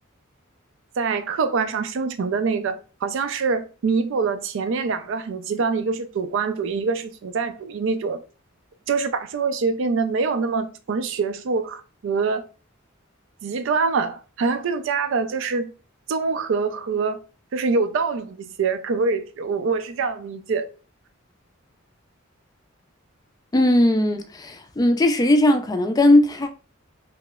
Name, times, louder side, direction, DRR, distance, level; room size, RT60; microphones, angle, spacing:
voice 1, 1.0-8.2 8.9-12.4 13.4-15.7 16.1-17.2 17.5-20.7, right 4 dB, 65° right, 0.4 m, -25 dB
voice 2, 23.5-26.5, left 1 dB, 20° left, 0.3 m, -18 dB
3.0 x 2.9 x 2.3 m
head